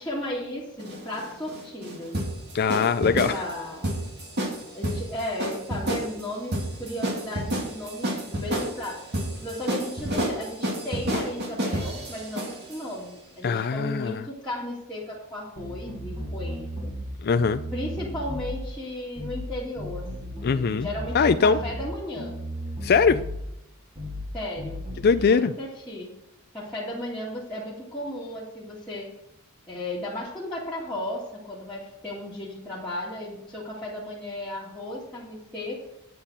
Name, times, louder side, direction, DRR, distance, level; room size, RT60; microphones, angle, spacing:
voice 1, 0.0-2.2 3.0-4.0 4.8-9.0 9.4-16.9 17.7-22.4 24.3-24.9 25.1-26.1 26.5-29.1 29.7-35.9, left 1 dB, 5° left, -9 dB, 2.2 m, -35 dB
sound 1, 0.8-12.8, right 1 dB, 50° right, 2.4 m, -30 dB
voice 2, 2.5-3.4 13.4-14.2 17.2-17.6 20.4-20.9 21.1-21.6 22.8-23.2 25.0-25.5, left 5 dB, 45° left, 9 dB, 0.4 m, -21 dB
sound 2, 15.6-17.1 17.4-18.6 19.2-19.5 19.8-21.9 22.2-23.4 24.0-24.3 24.6-25.2, equal, 30° right, 2.7 m, -35 dB
9.5 x 7.2 x 6.8 m, 0.83 s
head